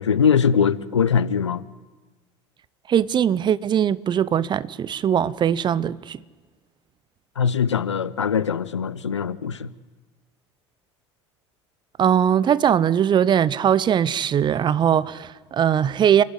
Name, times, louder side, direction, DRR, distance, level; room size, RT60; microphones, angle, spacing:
voice 1, 0.0-1.6 7.4-9.7, left 7 dB, 80° left, 0.7 m, -21 dB
voice 2, 2.9-6.2 12.0-16.2, right 9 dB, 30° right, 0.7 m, -20 dB
29.0 x 11.5 x 9.7 m
figure-of-eight pair, 65°, 15 cm